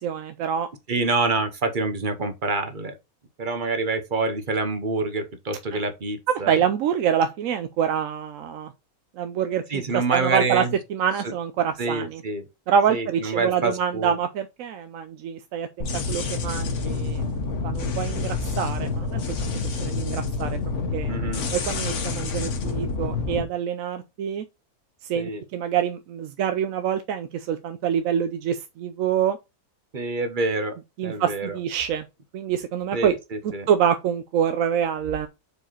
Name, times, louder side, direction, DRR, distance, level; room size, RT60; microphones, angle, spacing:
voice 1, 0.0-0.7 5.7-5.8 6.3-8.7 9.2-10.6 10.9-12.2 12.7-17.2 17.6-19.5 19.8-20.6 20.9-21.1 21.5-24.5 25.0-29.4 31.0-32.0 32.3-33.2 33.7-35.3, right 8 dB, 75° right, 1.0 m, -26 dB
voice 2, 0.9-2.9 3.4-6.6 9.7-10.8 11.2-11.3 11.8-12.4 12.9-14.1 21.1-21.4 25.1-25.4 29.9-30.7 31.0-31.6 32.9-33.7, right 3 dB, 40° right, 1.0 m, -26 dB
sound 1, 15.8-23.4, left 4 dB, 55° left, 1.3 m, -28 dB
4.9 x 4.5 x 4.3 m
omnidirectional pair, 1.5 m